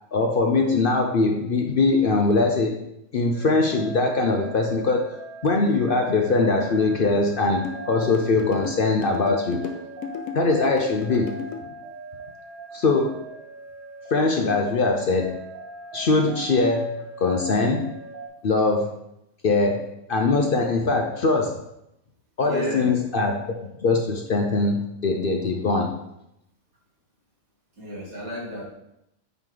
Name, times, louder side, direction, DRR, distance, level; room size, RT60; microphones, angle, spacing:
voice 1, 0.1-2.8 3.1-5.1 5.4-9.6 10.3-11.3 12.7-13.2 14.1-15.4 15.9-17.9 18.4-18.9 19.4-19.8 20.1-21.6 22.4-23.5 23.8-25.9, left 3 dB, 55° left, 2 dB, 0.7 m, -22 dB
sound 1, 3.3-18.3, right 2 dB, 40° right, 1.5 m, -41 dB
sound 2, 7.6-11.6, left 6 dB, 80° left, 1.1 m, -34 dB
voice 2, 22.4-22.9 27.8-28.6, left 1 dB, 90° right, -5 dB, 2.4 m, -33 dB
9.0 x 3.2 x 3.8 m, 0.83 s
omnidirectional pair, 1.4 m